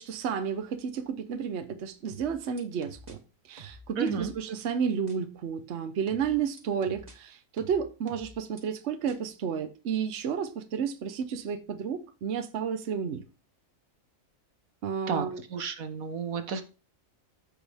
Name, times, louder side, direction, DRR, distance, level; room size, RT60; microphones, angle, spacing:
voice 1, 0.0-3.2 3.5-13.2 14.8-15.4, right 7 dB, 55° right, 1.1 m, -31 dB
sound 1, 2.1-3.1 3.6-4.4 5.1-5.2 6.1-7.1 7.6-8.6 9.1-9.2, right 3 dB, 30° right, 1.4 m, -48 dB
voice 2, 4.0-4.3 15.1-16.6, right 6 dB, 80° right, 1.4 m, -32 dB
14.0 x 5.4 x 3.5 m
omnidirectional pair, 1.4 m